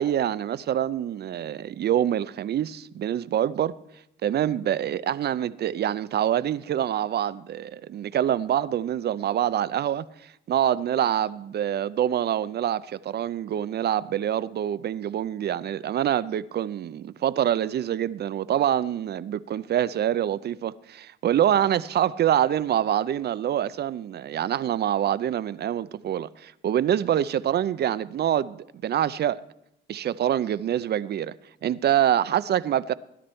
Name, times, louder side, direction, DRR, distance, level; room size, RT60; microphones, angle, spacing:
voice 1, 0.0-3.7 4.2-28.6 28.8-29.4 29.9-31.3 31.6-32.9, right 10 dB, 55° right, 0.5 m, -25 dB
18.5 x 10.0 x 4.4 m
cardioid pair, 90°, 20 cm